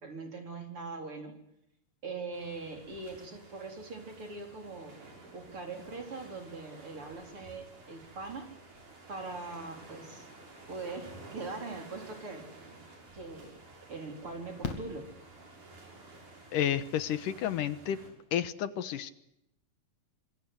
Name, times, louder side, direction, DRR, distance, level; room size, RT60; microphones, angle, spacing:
voice 1, 0.0-1.3 2.0-5.0 5.3-8.5 9.1-10.3 10.7-12.5 13.1-13.6 13.9-15.1, right 3 dB, 40° right, 4 dB, 4.9 m, -41 dB
sound 1, 2.3-18.1, right 2 dB, 65° right, 7.9 m, -52 dB
Fireworks, 14.6-15.9 17.7-17.8 18.0-18.1, left 5 dB, 55° left, 3.7 m, -40 dB
voice 2, 16.5-18.0 18.3-19.1, left 10 dB, 75° left, 13 dB, 2.8 m, -31 dB
26.0 x 24.0 x 8.1 m, 0.81 s
omnidirectional pair, 3.8 m